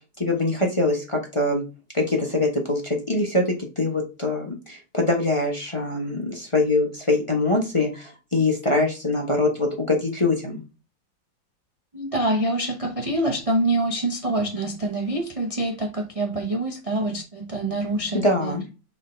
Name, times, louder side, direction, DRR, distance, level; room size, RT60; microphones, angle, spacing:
voice 1, 0.2-1.6 1.9-10.6 18.1-18.6, left 2 dB, 20° left, 0.8 m, -23 dB
voice 2, 11.9-18.6, right 1 dB, 40° right, 0.4 m, -26 dB
6.6 x 3.3 x 4.3 m
omnidirectional pair, 2.0 m